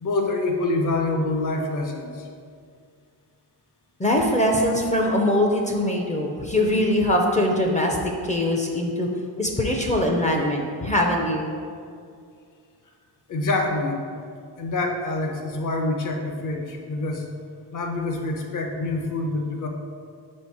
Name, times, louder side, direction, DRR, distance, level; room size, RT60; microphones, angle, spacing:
voice 1, 0.0-2.3 13.3-14.0 14.6-17.3 17.7-19.7, left 2 dB, 45° left, 3 dB, 0.8 m, -26 dB
voice 2, 4.0-8.0 8.2-9.1 9.4-11.5, left 1 dB, 15° left, 1 dB, 0.5 m, -22 dB
5.0 x 4.4 x 4.7 m, 2.2 s
cardioid pair, 130°, 44 cm